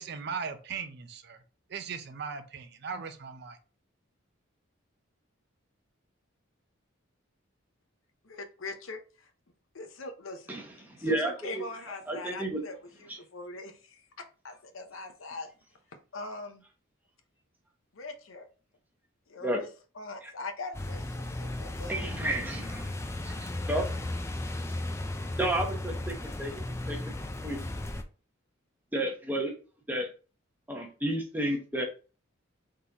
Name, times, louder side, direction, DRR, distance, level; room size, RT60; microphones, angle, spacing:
voice 1, 0.0-1.4 1.7-3.6, right 5 dB, 50° right, 0.5 m, -38 dB
voice 2, 8.2-9.3 9.7-10.6 11.0-15.5 16.1-16.6 17.9-18.4 19.3-19.7 19.9-22.3, left 2 dB, 75° left, 0.7 m, -42 dB
voice 3, 10.5-11.6 12.1-12.6 13.1-13.2 19.4-19.6 20.2-20.3 21.9-22.9 23.2-23.8 25.3-26.6 26.9-27.0 27.4-27.6 28.9-29.5 29.9-30.1 30.7-31.8, right 1 dB, 10° right, 0.8 m, -31 dB
sound 1, 20.7-28.0, left 1 dB, 15° left, 0.4 m, -35 dB
4.0 x 3.7 x 2.9 m
head